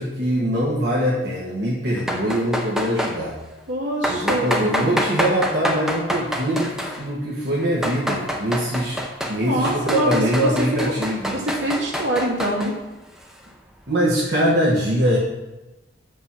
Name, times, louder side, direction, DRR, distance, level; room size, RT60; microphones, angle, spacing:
voice 1, 0.0-3.4 4.1-9.0 9.3-11.4 13.9-15.2, equal, 60° right, -5 dB, 1.3 m, -23 dB
sound 1, 2.0-3.2 4.0-7.1 7.6-9.4 9.6-12.7, equal, 5° right, 0.7 m, -26 dB
voice 2, 3.7-5.0 9.4-10.5 11.3-12.7, equal, 80° right, -3 dB, 2.4 m, -25 dB
8.0 x 5.4 x 5.8 m, 1.1 s
head